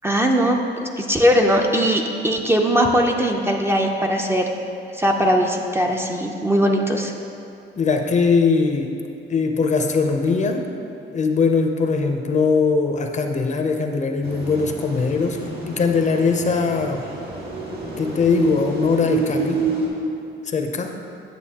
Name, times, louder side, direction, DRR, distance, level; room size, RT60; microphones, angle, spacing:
voice 1, 0.0-4.5 5.0-7.1, equal, 10° right, 1 dB, 0.5 m, -20 dB
voice 2, 7.8-8.9 9.3-10.7 11.1-17.0 18.0-19.6 20.4-20.9, left 4 dB, 40° left, 4 dB, 0.5 m, -21 dB
sound 1, 14.2-19.9, right 3 dB, 50° right, 1.8 m, -28 dB
9.1 x 7.0 x 2.8 m, 2.7 s
cardioid pair, 120°, 20 cm